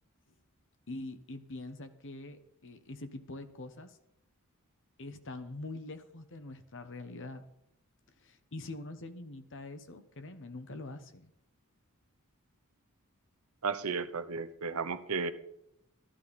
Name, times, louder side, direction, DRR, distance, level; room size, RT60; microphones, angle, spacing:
voice 1, 0.9-4.0 5.0-7.4 8.2-11.3, left 2 dB, 60° left, 10 dB, 1.1 m, -44 dB
voice 2, 13.6-15.3, right 5 dB, 70° right, 11 dB, 0.9 m, -34 dB
14.0 x 12.5 x 4.2 m, 0.80 s
head